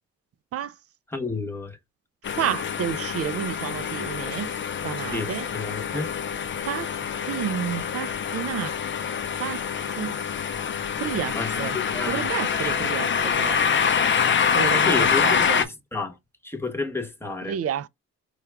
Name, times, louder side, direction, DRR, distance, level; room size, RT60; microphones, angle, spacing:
voice 1, 1.1-1.8 5.1-6.1 11.3-12.3 12.6-12.9 14.8-16.2 16.4-17.6, left 3 dB, 10° left, 1.1 m, -31 dB
sound 1, 2.2-15.6, left 7 dB, 40° left, 0.6 m, -25 dB
voice 2, 2.3-4.5 4.8-5.5 6.7-6.9 7.3-8.8 9.1-9.6 10.0-10.1 11.0-11.8 12.1-13.6 14.5-15.6 17.4-17.9, right 9 dB, 50° right, 0.4 m, -30 dB
4.6 x 2.4 x 3.3 m
cardioid pair, 90°, 30 cm